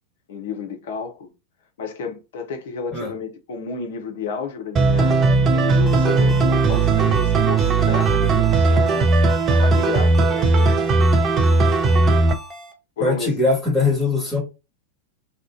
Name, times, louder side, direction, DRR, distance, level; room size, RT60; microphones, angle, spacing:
voice 1, 0.3-1.3 1.8-9.1 9.5-10.9 13.0-13.4, left 4 dB, 55° left, 0.6 m, -32 dB
sound 1, 4.8-12.3, right 3 dB, 25° right, 0.4 m, -17 dB
Ringtone, 5.9-12.7, right 1 dB, ahead, 0.8 m, -38 dB
voice 2, 13.0-14.4, left 3 dB, 15° left, 1.3 m, -21 dB
2.4 x 2.1 x 3.6 m
figure-of-eight pair, 90°, 0 cm